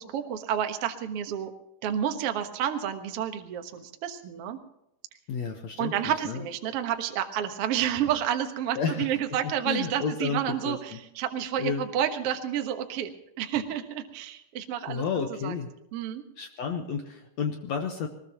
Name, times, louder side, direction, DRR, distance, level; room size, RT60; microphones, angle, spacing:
voice 1, 0.0-1.5 1.8-4.6 5.8-13.1 13.4-15.0 15.4-15.5 15.9-16.2, right 10 dB, 90° right, 6 dB, 1.3 m, -30 dB
voice 2, 5.3-6.5 8.7-9.1 9.6-11.0 11.6-11.8 14.9-15.7 16.4-18.1, left 6 dB, 75° left, 4 dB, 1.6 m, -31 dB
21.0 x 20.5 x 3.0 m, 0.81 s
omnidirectional pair, 4.7 m